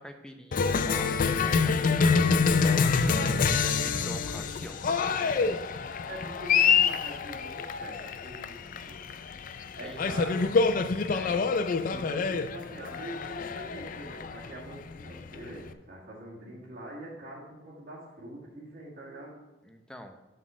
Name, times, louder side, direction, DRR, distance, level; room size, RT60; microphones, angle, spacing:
voice 1, 0.0-5.6 9.8-10.0 11.1-11.4 19.6-20.2, equal, 5° left, 5 dB, 0.7 m, -44 dB
Cheering, 0.5-15.7, left 5 dB, 45° left, 0.4 m, -27 dB
voice 2, 6.1-8.6 8.8-9.0 9.8-10.5 11.9-19.4, right 1 dB, 55° right, -7 dB, 1.8 m, -43 dB
7.6 x 4.1 x 6.2 m, 1.2 s
head